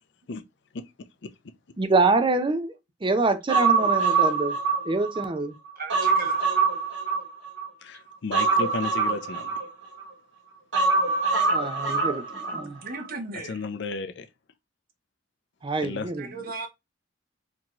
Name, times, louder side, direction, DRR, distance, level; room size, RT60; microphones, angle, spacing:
voice 1, 0.7-1.3 4.0-4.2 7.8-9.7 13.5-14.3 15.8-16.1, left 4 dB, 70° left, 0.5 m, -34 dB
voice 2, 1.8-2.7 3.0-4.6 4.9-5.6 11.5-12.8 15.6-16.3, right 3 dB, 25° right, 0.5 m, -25 dB
Human voice, 3.5-5.3 5.7-7.7 8.3-10.1 10.7-12.7 12.9-13.1, right 4 dB, 80° right, 1.5 m, -24 dB
voice 3, 5.8-6.5 12.8-13.6 16.2-16.7, right 3 dB, 50° right, 0.9 m, -36 dB
4.4 x 2.8 x 2.9 m
head